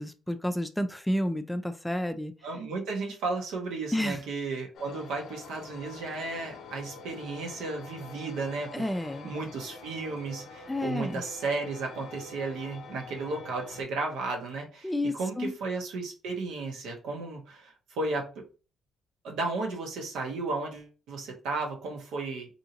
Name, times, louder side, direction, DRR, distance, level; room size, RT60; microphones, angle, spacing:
voice 1, 0.0-2.3 3.9-4.2 8.7-9.3 10.7-11.2 14.8-15.5, left 1 dB, 5° left, 0.4 m, -30 dB
voice 2, 2.4-8.9 9.2-18.4 19.2-22.5, right 3 dB, 85° right, 0.9 m, -34 dB
sound 1, 4.7-13.8, left 4 dB, 70° left, 0.5 m, -46 dB
2.7 x 2.5 x 2.8 m
cardioid pair, 90°, 0 cm